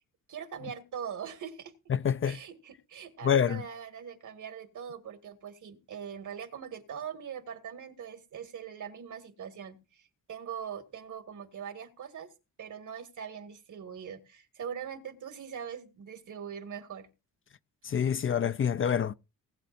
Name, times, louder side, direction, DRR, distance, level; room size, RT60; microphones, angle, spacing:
voice 1, 0.3-1.7 2.2-12.3 12.6-17.1, right 8 dB, 65° right, 2.1 m, -42 dB
voice 2, 1.9-2.4 3.2-3.6 17.8-19.1, left 8 dB, 40° left, 0.4 m, -26 dB
19.5 x 8.9 x 2.6 m
wide cardioid pair, 125°, 33 cm